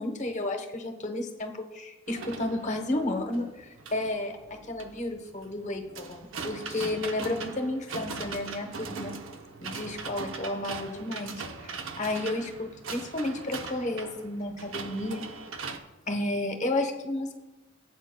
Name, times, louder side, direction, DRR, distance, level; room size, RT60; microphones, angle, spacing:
voice 1, 0.0-4.3 4.7-9.1 9.6-15.2 16.1-17.3, left 1 dB, 40° left, 4 dB, 0.9 m, -32 dB
sound 1, 2.1-15.8, right 4 dB, 85° right, 0.7 m, -40 dB
16.0 x 8.1 x 2.2 m, 1.1 s
head